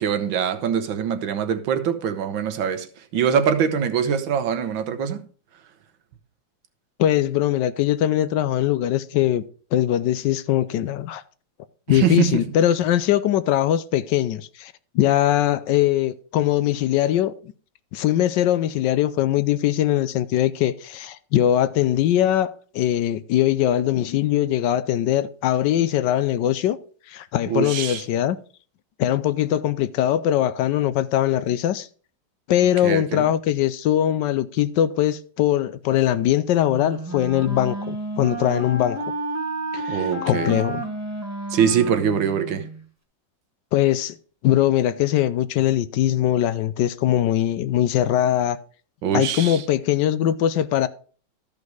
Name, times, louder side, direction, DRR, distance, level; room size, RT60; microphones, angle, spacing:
voice 1, 0.0-5.2 11.9-12.4 27.5-28.0 32.8-33.3 39.9-40.6 41.5-42.7 49.0-49.6, right 8 dB, 85° right, 1.7 m, -23 dB
voice 2, 7.0-9.4 9.7-11.2 11.9-17.5 17.9-26.8 27.1-28.4 29.0-31.9 32.5-39.0 39.7-40.8 43.7-44.2 44.4-48.6 49.1-50.9, left 12 dB, 75° left, 1.2 m, -21 dB
Wind instrument woodwind instrument, 36.7-42.8, right 2 dB, 15° right, 0.7 m, -31 dB
13.5 x 5.3 x 4.7 m
omnidirectional pair, 2.0 m